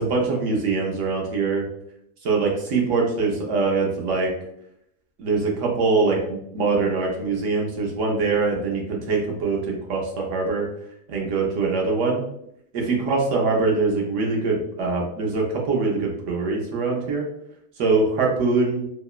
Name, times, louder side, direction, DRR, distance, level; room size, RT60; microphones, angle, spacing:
voice 1, 0.0-1.7 2.2-4.3 5.2-10.7 11.1-12.2 12.7-17.3 17.8-18.8, right 4 dB, 65° right, -1 dB, 0.8 m, -23 dB
2.9 x 2.0 x 2.3 m, 0.74 s
omnidirectional pair, 1.5 m